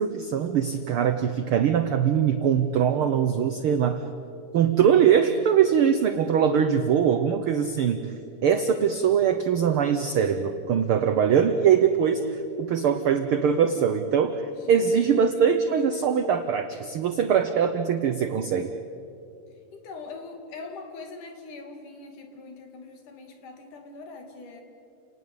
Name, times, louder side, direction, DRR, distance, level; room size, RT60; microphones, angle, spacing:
voice 1, 0.0-4.0 4.5-8.1 8.4-12.2 12.6-14.4 14.7-18.7, right 8 dB, 80° right, 9 dB, 1.2 m, -22 dB
voice 2, 8.7-9.1 14.5-16.2 19.7-24.6, left 3 dB, 75° left, 5 dB, 3.8 m, -43 dB
29.0 x 19.0 x 8.3 m, 2.7 s
omnidirectional pair, 3.6 m